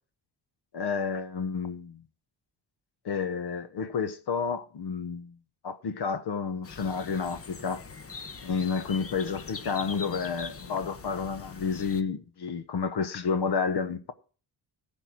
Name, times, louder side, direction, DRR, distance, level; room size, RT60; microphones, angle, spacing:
voice 1, 0.7-2.0 3.0-5.3 5.6-7.8 8.4-14.1, left 5 dB, 65° left, 1.1 m, -30 dB
sound 1, 6.6-12.0, left 4 dB, 30° left, 1.0 m, -43 dB
15.0 x 5.6 x 6.2 m
cardioid pair, 85°, 44 cm